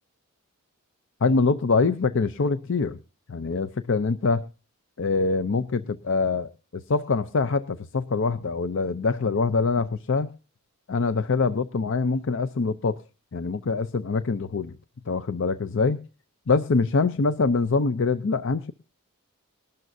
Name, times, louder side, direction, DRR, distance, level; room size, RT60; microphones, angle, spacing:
voice 1, 1.2-3.0 3.3-4.5 5.0-10.3 10.9-13.0 13.3-14.8 15.1-16.0 16.5-18.7, left 4 dB, 60° left, 12 dB, 0.6 m, -24 dB
20.5 x 12.5 x 2.7 m, 0.32 s
head